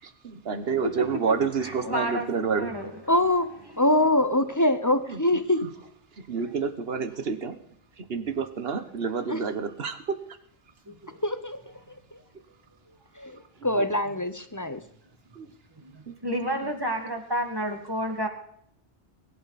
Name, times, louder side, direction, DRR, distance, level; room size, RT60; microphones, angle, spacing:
voice 1, 0.0-2.8 5.1-5.2 5.6-5.7 6.1-7.6 8.0-10.2 13.6-13.7 15.3-15.5 16.1-16.2 16.5-16.7, right 5 dB, 65° right, 10 dB, 1.4 m, -29 dB
voice 2, 1.6-2.3 2.6-2.9 10.9-11.2 11.9-12.0 15.8-18.3, right 1 dB, 20° right, 4 dB, 2.1 m, -30 dB
voice 3, 3.1-5.7 9.3-9.4 11.2-11.6 12.1-12.2 13.2-14.8, left 1 dB, 20° left, 10 dB, 0.8 m, -24 dB
21.5 x 11.5 x 4.2 m, 0.66 s
omnidirectional pair, 1.1 m